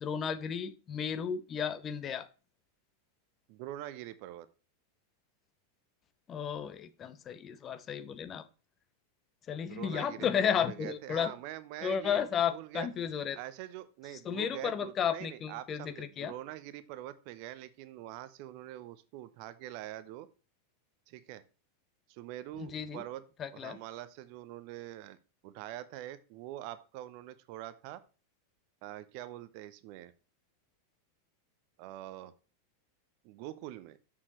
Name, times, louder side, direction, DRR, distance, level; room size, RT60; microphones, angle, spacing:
voice 1, 0.0-2.3 6.3-8.4 9.5-11.3 11.8-13.4 14.2-16.3 22.6-23.0 23.4-23.8, left 8 dB, 25° left, 12 dB, 0.7 m, -33 dB
voice 2, 3.5-4.5 9.6-12.2 12.5-12.9 13.3-20.3 21.1-21.4 22.1-23.2 23.5-25.2 25.4-28.0 28.8-30.1 31.8-32.3 33.2-34.0, right 14 dB, 45° right, 15 dB, 0.6 m, -44 dB
7.1 x 6.6 x 3.0 m, 0.33 s
figure-of-eight pair, 90°, 0 cm